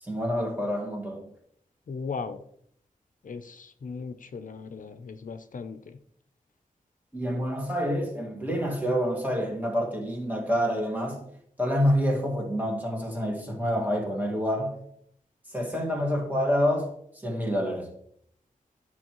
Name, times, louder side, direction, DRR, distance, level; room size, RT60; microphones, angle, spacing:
voice 1, 0.0-1.3 7.1-11.3 11.6-14.8 15.5-17.0 17.2-17.9, equal, 10° right, 2.1 m, -27 dB
voice 2, 1.9-2.4 3.2-6.0, left 5 dB, 65° left, 0.5 m, -37 dB
9.8 x 6.2 x 3.0 m
wide cardioid pair, 95°, 14 cm